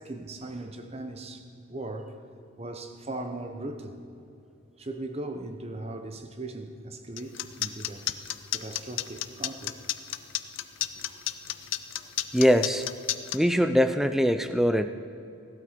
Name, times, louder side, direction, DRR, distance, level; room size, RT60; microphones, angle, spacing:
voice 1, 0.0-2.1 2.6-4.0 4.8-8.1 8.5-9.8 11.0-11.2, right 2 dB, 30° right, 6 dB, 0.9 m, -38 dB
sound 1, 7.2-13.4, left 14 dB, 60° left, 0.5 m, -31 dB
voice 2, 12.3-12.9 13.3-14.9, equal, ahead, 9 dB, 0.4 m, -22 dB
16.5 x 12.0 x 5.2 m, 2.6 s
head